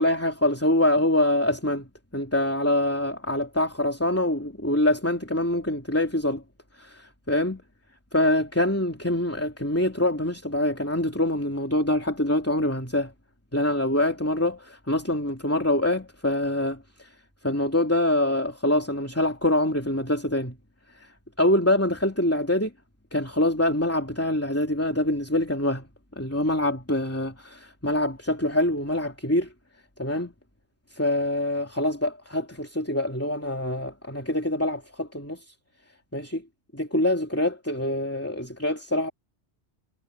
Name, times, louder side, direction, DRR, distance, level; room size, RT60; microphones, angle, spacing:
voice 1, 0.0-1.9 2.1-6.4 6.8-7.6 8.1-13.1 13.5-17.1 17.4-20.6 21.0-21.1 21.4-22.7 23.1-25.9 26.2-29.5 30.0-30.3 30.9-35.5 36.1-36.4 36.7-39.1, left 1 dB, 10° left, 2.9 m, -25 dB
omnidirectional pair, 1.1 m